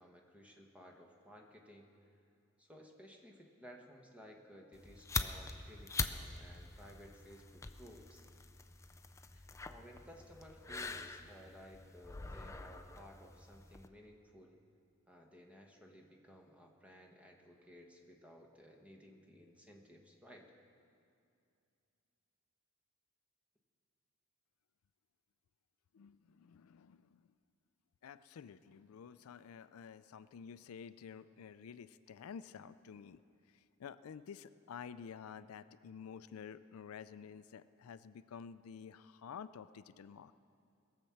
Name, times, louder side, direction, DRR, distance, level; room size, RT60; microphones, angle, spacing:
voice 1, 0.0-2.0 2.6-8.2 9.3-14.6 15.1-20.4, equal, 5° right, 1 dB, 1.1 m, -57 dB
sound 1, 4.7-13.9, left 4 dB, 15° left, 0.4 m, -44 dB
voice 2, 25.9-27.2 28.0-33.2 33.5-40.3, left 7 dB, 90° left, 14 dB, 0.4 m, -51 dB
20.0 x 7.5 x 5.8 m, 2.5 s
head